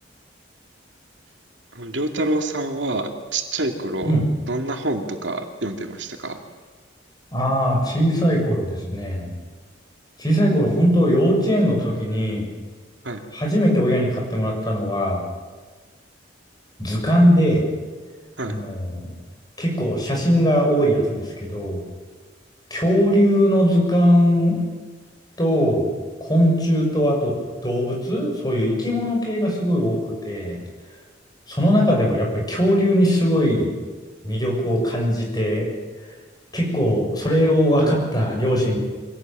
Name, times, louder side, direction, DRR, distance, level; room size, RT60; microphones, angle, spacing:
voice 1, 1.7-4.1 4.5-6.4 13.0-13.2 18.4-18.6 37.8-38.0, right 2 dB, 75° right, 4 dB, 2.5 m, -27 dB
voice 2, 7.3-9.3 10.2-12.5 13.3-15.2 16.8-17.6 18.5-19.1 19.6-21.8 22.7-24.6 25.4-25.9 26.2-27.3 27.6-30.6 31.5-33.7 34.2-35.7 36.5-38.8, equal, 20° left, 0 dB, 6.9 m, -20 dB
25.0 x 18.0 x 9.1 m, 1.4 s
head